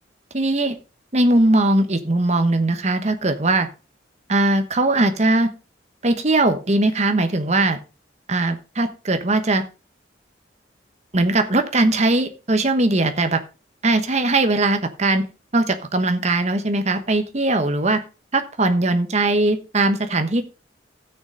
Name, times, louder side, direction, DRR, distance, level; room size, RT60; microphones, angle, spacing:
voice 1, 0.3-0.8 1.1-3.7 4.3-5.5 6.0-7.8 8.3-9.6 11.1-13.4 13.8-15.3 15.5-18.0 18.3-20.4, right 2 dB, 35° right, 8 dB, 1.1 m, -20 dB
13.5 x 6.7 x 3.8 m, 0.32 s
head